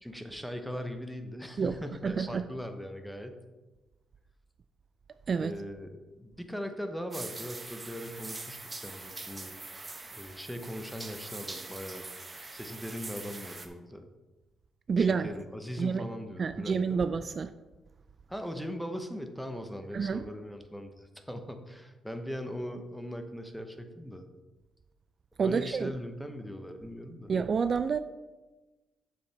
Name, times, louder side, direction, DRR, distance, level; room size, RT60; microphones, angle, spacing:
voice 1, 0.0-3.4 5.4-9.6 10.1-12.1 12.5-14.1 15.0-17.1 18.3-24.3 25.4-27.3, equal, ahead, 6 dB, 0.9 m, -40 dB
voice 2, 2.0-2.4 5.3-5.5 14.9-15.3 15.8-16.1 16.4-17.5 19.9-20.2 25.4-25.9 27.3-28.0, right 5 dB, 45° right, 10 dB, 0.3 m, -28 dB
sound 1, 7.1-13.7, right 3 dB, 20° right, 1.0 m, -43 dB
8.3 x 7.2 x 3.4 m, 1.2 s
cardioid pair, 90°, 0 cm